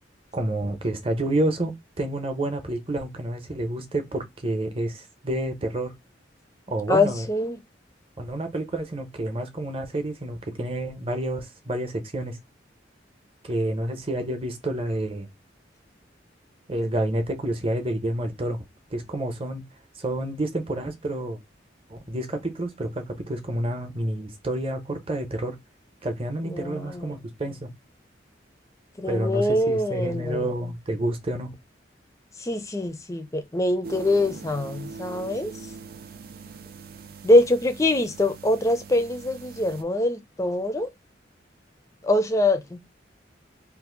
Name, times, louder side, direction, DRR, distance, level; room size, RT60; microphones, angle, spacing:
voice 1, 0.3-5.9 6.7-7.3 8.2-12.4 13.4-15.3 16.7-18.6 18.9-19.6 20.0-21.4 21.9-25.6 26.0-27.7 29.1-31.5, right 1 dB, 30° right, 0.8 m, -29 dB
voice 2, 6.9-7.6 26.5-27.2 29.0-30.4 32.4-35.5 37.2-40.9 42.0-42.8, left 1 dB, 15° left, 0.5 m, -23 dB
sound 1, 33.8-39.8, right 5 dB, 55° right, 0.4 m, -42 dB
2.7 x 2.5 x 3.7 m
head